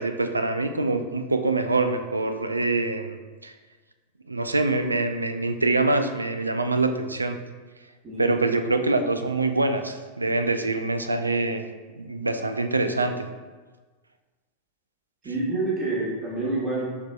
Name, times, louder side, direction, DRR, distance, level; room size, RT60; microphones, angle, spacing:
voice 1, 0.0-3.2 3.4-3.5 4.3-7.4 8.2-11.6 12.0-13.3, right 2 dB, 80° right, 8 dB, 0.3 m, -25 dB
voice 2, 15.2-16.9, right 2 dB, 25° right, -6 dB, 1.3 m, -27 dB
6.2 x 3.6 x 2.2 m, 1.4 s
figure-of-eight pair, 90°, 0 cm